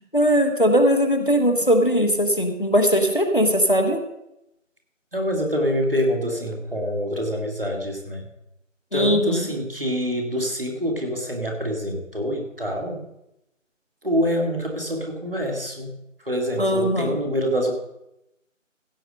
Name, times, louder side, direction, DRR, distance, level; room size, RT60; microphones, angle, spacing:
voice 1, 0.1-4.0 8.9-9.5 16.6-17.2, equal, 40° left, 4 dB, 1.1 m, -20 dB
voice 2, 5.1-8.3 8.9-13.1 14.0-17.7, equal, 45° right, 2 dB, 2.1 m, -26 dB
15.5 x 7.2 x 5.2 m, 0.86 s
figure-of-eight pair, 175°, 39 cm